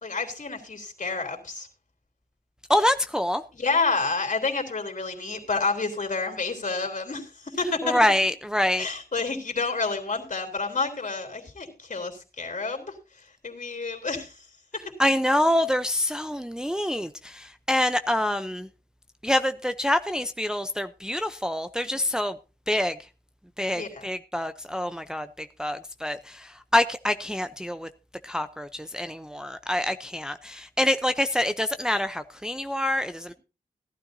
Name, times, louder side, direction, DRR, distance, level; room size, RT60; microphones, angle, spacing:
voice 1, 0.0-1.7 3.5-8.0 8.8-12.9 13.4-14.4 23.8-24.1, left 4 dB, 50° left, 3.5 m, -29 dB
voice 2, 2.7-3.4 7.8-8.9 15.0-18.7 19.2-22.3 22.7-22.9 23.6-26.2 26.7-27.9 28.2-33.3, left 1 dB, 5° right, 0.6 m, -26 dB
17.5 x 12.0 x 2.7 m
wide cardioid pair, 70°, 16 cm